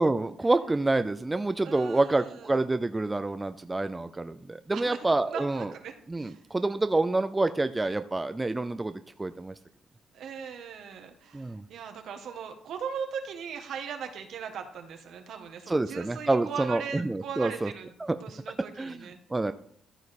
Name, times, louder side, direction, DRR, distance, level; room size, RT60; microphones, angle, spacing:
voice 1, 0.0-5.7 6.1-9.5 11.3-11.6 15.7-17.7 18.0-18.2 18.8-19.5, right 2 dB, 15° right, 10 dB, 0.5 m, -27 dB
voice 2, 1.6-2.6 4.7-6.4 10.1-17.9 18.2-19.2, right 7 dB, 75° right, 6 dB, 1.4 m, -39 dB
13.5 x 5.0 x 4.2 m, 0.62 s
cardioid pair, 90°, 0 cm